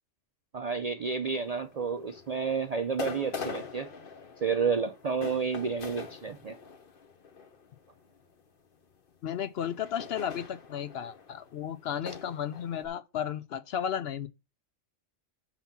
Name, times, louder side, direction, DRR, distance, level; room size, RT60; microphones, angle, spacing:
voice 1, 0.5-3.9 4.4-6.6, right 5 dB, 55° right, 0.4 m, -30 dB
sound 1, 1.3-8.4 9.3-12.9, left 5 dB, 50° left, 1.1 m, -43 dB
voice 2, 9.2-14.3, left 9 dB, 65° left, 0.7 m, -34 dB
6.0 x 5.9 x 5.6 m
omnidirectional pair, 1.3 m